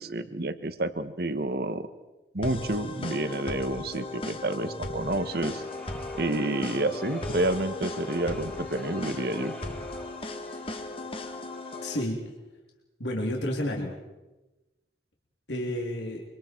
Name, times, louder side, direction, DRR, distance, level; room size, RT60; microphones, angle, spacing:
voice 1, 0.0-1.9 2.3-5.6 6.1-9.5, right 2 dB, 55° right, 11 dB, 1.3 m, -29 dB
sound 1, 2.4-12.0, left 2 dB, 30° left, 1.7 m, -36 dB
sound 2, 4.9-12.1, left 1 dB, 10° left, 2.6 m, -48 dB
voice 2, 11.8-12.2 13.0-13.9 15.5-16.2, left 1 dB, 70° left, -1 dB, 3.3 m, -30 dB
25.5 x 25.0 x 4.6 m, 1.1 s
head